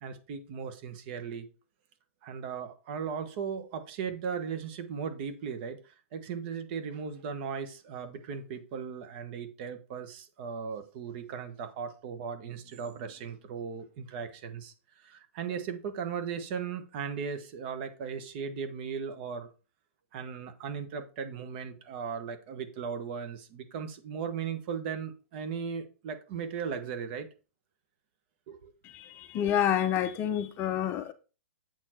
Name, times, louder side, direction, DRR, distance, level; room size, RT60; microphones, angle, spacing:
voice 1, 0.0-1.5 2.2-14.7 15.0-19.5 20.1-27.3 28.5-28.7, right 6 dB, 45° right, 1.2 m, -37 dB
voice 2, 28.9-31.1, left 10 dB, 30° left, 0.7 m, -28 dB
7.9 x 4.5 x 4.4 m
hypercardioid pair, 140°, 8 cm